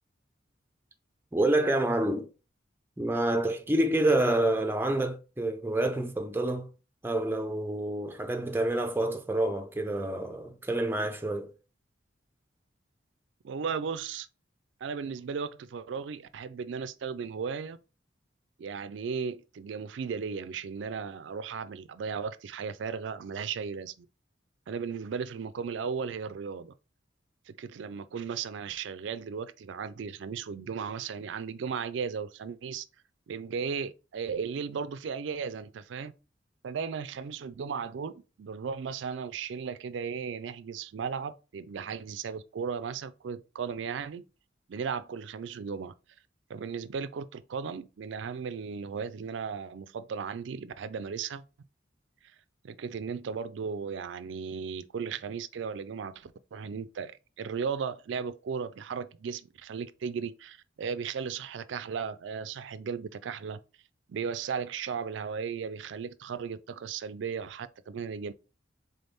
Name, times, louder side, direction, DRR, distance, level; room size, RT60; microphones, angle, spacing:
voice 1, 1.3-2.3 3.0-6.7 7.0-11.5, right 1 dB, 10° right, 0.4 m, -28 dB
voice 2, 13.4-14.3 14.8-17.8 18.6-24.1 24.7-26.7 27.5-32.9 33.3-36.1 36.6-44.2 44.7-45.9 46.5-51.4 52.6-63.6 64.1-68.3, right 6 dB, 75° right, 0.4 m, -36 dB
3.8 x 3.5 x 4.0 m
head